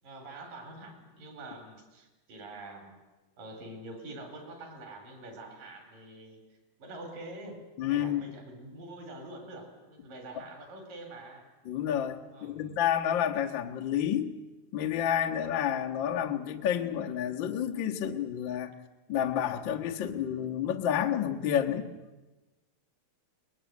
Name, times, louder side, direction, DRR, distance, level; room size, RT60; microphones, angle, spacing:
voice 1, 0.0-3.0 3.4-6.4 6.8-11.5 12.3-12.8, right 2 dB, 60° right, 6 dB, 5.7 m, -45 dB
voice 2, 7.8-8.3 11.6-14.3 14.7-18.7 19.1-21.9, left 10 dB, 65° left, 3 dB, 1.2 m, -30 dB
23.0 x 21.0 x 9.4 m, 1.2 s
omnidirectional pair, 4.4 m